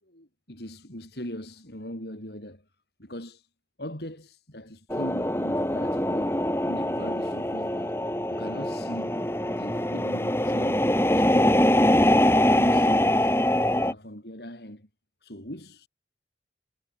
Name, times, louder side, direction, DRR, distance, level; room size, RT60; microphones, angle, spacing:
voice 1, 0.0-2.7 3.0-3.5 3.8-6.4 6.6-8.0 8.3-13.4 13.8-14.9 15.2-15.9, equal, 60° left, 7.3 m, -40 dB
sound 1, 4.9-13.9, left 1 dB, 15° left, 2.3 m, -23 dB
head